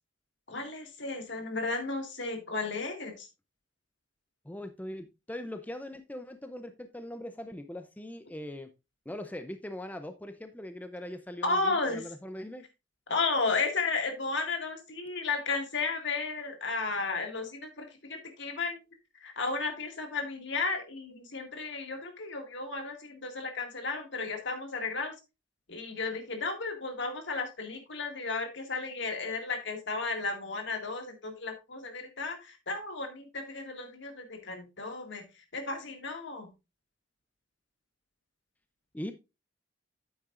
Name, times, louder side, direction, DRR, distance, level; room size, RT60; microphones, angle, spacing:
voice 1, 0.5-3.3 11.4-12.0 13.1-18.8 19.2-25.1 25.7-35.2 35.5-36.5, left 3 dB, 65° left, 4 dB, 2.0 m, -33 dB
voice 2, 4.4-8.7 9.1-12.7 38.9-39.1, left 1 dB, 10° left, 8 dB, 0.5 m, -41 dB
8.7 x 8.5 x 2.5 m, 0.26 s
head